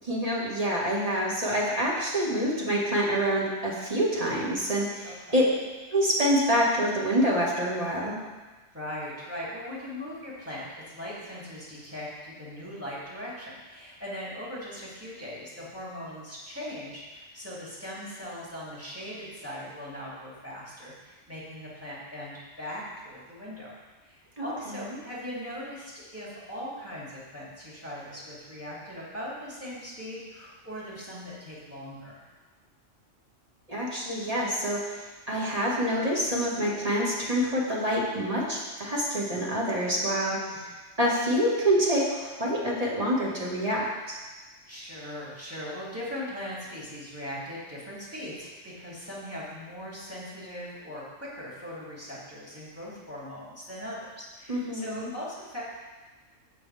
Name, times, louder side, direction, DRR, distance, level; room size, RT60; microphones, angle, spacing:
voice 1, 0.0-5.5 5.9-8.2 24.4-25.0 33.7-40.7 41.0-44.2 54.5-55.1, equal, 30° right, -4 dB, 1.9 m, -27 dB
voice 2, 5.0-5.5 8.7-23.7 24.0-32.2 40.5-40.6 44.7-55.6, left 1 dB, 10° right, -7 dB, 2.9 m, -40 dB
14.5 x 5.6 x 3.4 m, 1.3 s
omnidirectional pair, 1.2 m